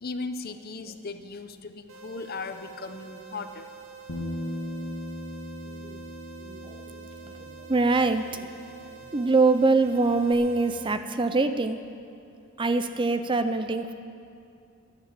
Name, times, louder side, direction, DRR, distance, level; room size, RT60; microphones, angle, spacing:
voice 1, 0.0-3.7, left 3 dB, 45° left, 9 dB, 0.7 m, -37 dB
sound 1, 1.9-10.9, right 6 dB, 65° right, 0.9 m, -46 dB
Bass guitar, 4.1-8.9 9.1-10.3, left 1 dB, 70° left, 1.4 m, -39 dB
voice 2, 5.7-6.0 6.4-8.5 9.1-11.8 12.6-13.9, right 3 dB, 25° right, 10 dB, 0.4 m, -24 dB
13.0 x 11.0 x 7.6 m, 2.5 s
head